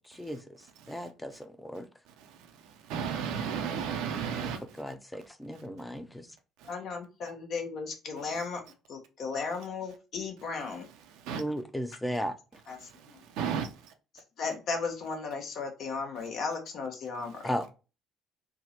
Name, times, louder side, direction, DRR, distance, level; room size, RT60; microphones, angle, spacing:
voice 1, 0.9-1.9 4.8-6.1 11.4-12.3 17.4-17.6, equal, 10° left, 0.6 m, -35 dB
voice 2, 2.2-4.8 5.5-5.6 6.6-6.7 8.3-8.4 11.0-11.4 12.8-13.9, right 7 dB, 65° right, 0.5 m, -35 dB
voice 3, 6.6-8.6 8.9-10.9 12.7-13.2 14.4-17.5, left 4 dB, 55° left, 0.8 m, -35 dB
3.5 x 2.0 x 2.8 m
hypercardioid pair, 55°, 0 cm